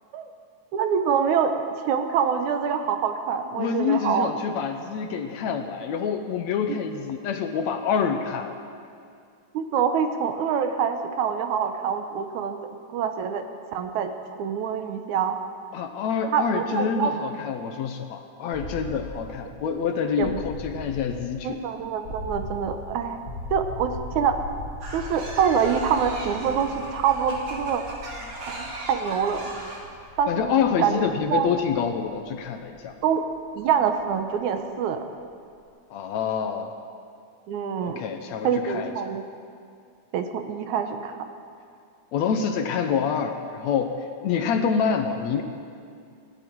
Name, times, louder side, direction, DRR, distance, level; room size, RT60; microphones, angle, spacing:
voice 1, 0.7-1.5 1.9-4.3 6.7-6.8 9.5-12.6 12.9-13.4 13.7-14.1 14.4-15.4 16.3-17.1 20.2-20.4 21.4-23.2 23.5-24.4 24.9-27.8 28.5-29.5 30.2-30.5 30.8-31.0 31.3-31.5 33.0-33.2 33.6-35.0 37.5-38.2 38.4-39.3 40.1-41.2, right 7 dB, 75° right, 7 dB, 2.2 m, -25 dB
voice 2, 3.6-8.5 15.7-21.6 28.2-28.3 30.3-32.9 35.9-36.7 37.8-39.1 42.1-44.0 44.2-45.4, left 6 dB, 70° left, 6 dB, 2.0 m, -27 dB
sound 1, 18.5-34.4, left 1 dB, 40° left, 3.1 m, -40 dB
sound 2, 24.8-29.8, right 1 dB, 55° right, 3.4 m, -38 dB
19.0 x 16.0 x 4.6 m, 2.4 s
omnidirectional pair, 3.5 m